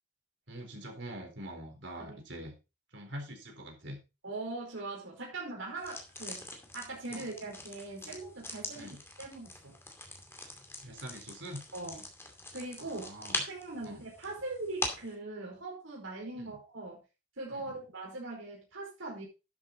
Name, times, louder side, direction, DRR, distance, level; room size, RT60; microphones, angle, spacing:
voice 1, 0.5-2.5 2.9-4.0 7.1-7.3 8.7-9.0 10.8-11.6 12.8-13.4 13.8-14.0 16.4-16.6 17.5-17.8, right 1 dB, 65° right, 3 dB, 4.0 m, -44 dB
voice 2, 4.2-6.5 6.7-9.7 11.7-12.0 12.5-13.1 13.5-17.0 17.4-19.3, right 2 dB, 85° right, -2 dB, 4.9 m, -41 dB
sound 1, 5.8-15.1, left 2 dB, 15° left, 2.4 m, -42 dB
11.5 x 7.7 x 3.9 m, 0.28 s
head